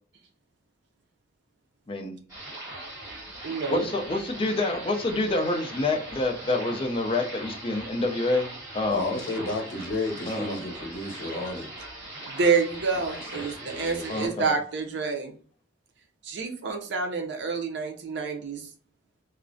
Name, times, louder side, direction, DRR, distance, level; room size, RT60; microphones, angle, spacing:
voice 1, 1.9-2.2 3.7-9.2 10.3-10.6 14.1-14.6, left 2 dB, 30° left, 0.4 m, -27 dB
sound 1, 2.3-14.3, right 1 dB, 20° right, 1.2 m, -40 dB
voice 2, 3.4-3.9 12.3-15.3 16.2-18.6, right 5 dB, 65° right, 0.5 m, -28 dB
voice 3, 8.9-11.7 12.9-14.2, left 2 dB, 90° left, 0.7 m, -33 dB
2.4 x 2.0 x 2.5 m
head